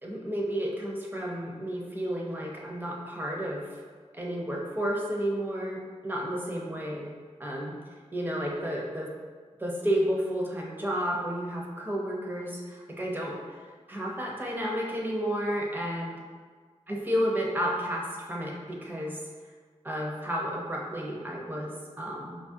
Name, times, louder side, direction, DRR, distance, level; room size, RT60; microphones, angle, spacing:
voice 1, 0.0-3.7 4.1-7.1 7.4-7.7 8.1-9.1 9.6-13.4 13.9-16.2 16.9-19.2 19.8-22.4, equal, 15° right, -2 dB, 0.7 m, -31 dB
4.8 x 2.3 x 2.7 m, 1.5 s
wide cardioid pair, 75°, 12 cm